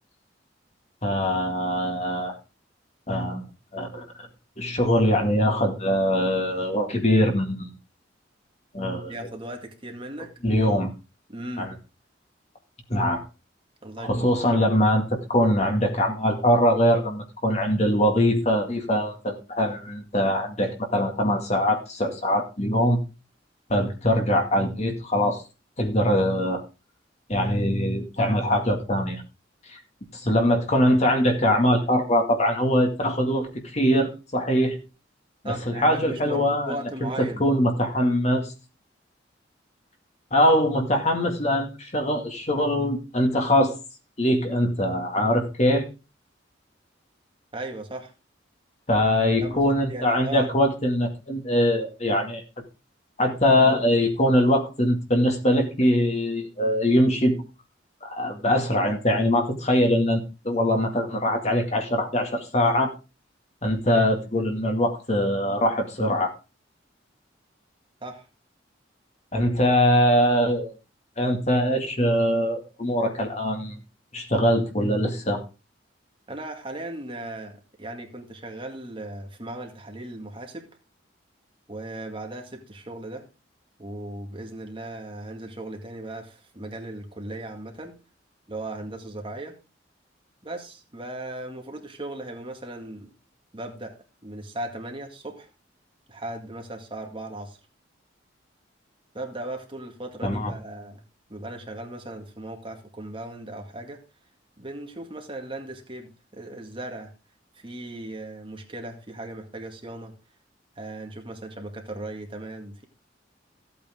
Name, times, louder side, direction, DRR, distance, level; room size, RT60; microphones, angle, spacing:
voice 1, 1.0-2.3 3.1-3.4 3.7-4.0 4.6-7.7 8.7-9.1 10.4-10.9 11.6-11.7 12.9-13.2 14.0-23.0 23.7-25.4 25.8-26.6 27.3-29.2 29.6-29.8 30.1-34.8 35.4-36.7 37.0-38.5 40.3-43.8 44.2-45.9 48.9-52.4 53.2-57.3 58.0-62.9 63.6-66.3 69.3-70.7 71.2-73.8 74.1-75.4 100.2-100.5, equal, 35° left, 3 dB, 2.1 m, -22 dB
voice 2, 9.1-10.3 11.3-11.7 13.8-14.7 35.4-37.4 47.5-48.1 49.4-50.5 68.0-68.3 76.3-80.7 81.7-83.3 83.8-87.9 88.5-89.6 90.4-93.1 93.5-94.0 94.2-95.5 96.1-97.6 99.1-101.0 101.3-104.0 104.6-107.1 107.5-110.2 110.8-112.8, right 1 dB, 25° right, 3 dB, 2.0 m, -37 dB
15.0 x 8.5 x 3.7 m, 0.31 s
head